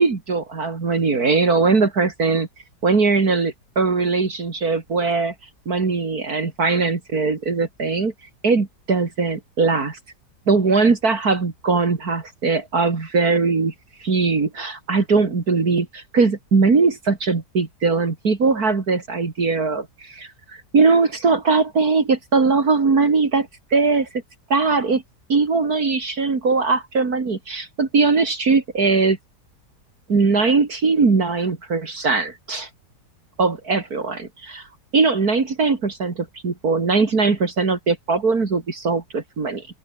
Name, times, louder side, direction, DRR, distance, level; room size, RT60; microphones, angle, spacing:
voice 1, 0.0-2.5 2.8-5.3 5.7-8.1 8.4-10.0 10.5-13.7 14.0-24.2 24.5-25.0 25.3-29.2 30.1-32.7 33.4-34.7 34.9-39.7, right 4 dB, 60° right, 3.1 m, -20 dB
open air
omnidirectional pair, 1.8 m